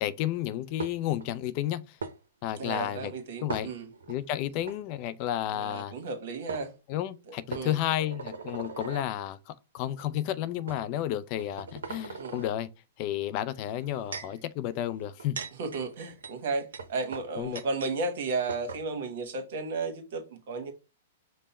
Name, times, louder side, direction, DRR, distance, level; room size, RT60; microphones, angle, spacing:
voice 1, 0.0-2.0 2.4-3.1 3.4-3.7 4.1-5.9 6.9-12.7 13.0-15.4 17.4-17.6, left 12 dB, 45° left, 0.4 m, -32 dB
sound 1, 0.8-1.3 2.0-2.2 3.5-4.2 4.6-4.8 6.1-6.2 6.5-6.7 7.5-9.1 9.9-10.0 10.7-10.8 11.3-12.5 13.6-14.4 15.0-18.0 18.2-18.3 18.5-18.8, right 5 dB, 80° right, 0.7 m, -39 dB
voice 2, 2.6-3.9 5.5-6.7 7.5-7.8 12.2-12.4 15.6-20.7, right 3 dB, 65° right, 1.3 m, -33 dB
5.3 x 2.1 x 4.2 m
hypercardioid pair, 125°, 0 cm